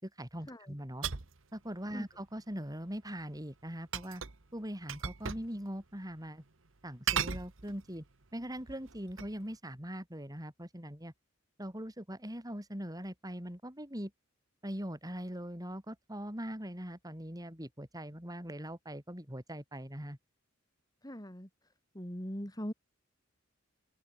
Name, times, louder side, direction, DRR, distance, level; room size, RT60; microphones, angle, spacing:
voice 1, 0.0-1.1 1.5-4.2 4.5-6.4 6.8-8.0 8.3-11.1 11.6-14.1 14.6-20.2, equal, 20° right, 7.0 m, -41 dB
sound 1, 1.0-1.4 3.9-4.4 4.9-5.5 5.8-5.9 7.1-8.0 8.6-9.4, right 7 dB, 65° right, 1.4 m, -36 dB
voice 2, 21.0-21.5 21.9-22.7, equal, 20° left, 4.4 m, -41 dB
head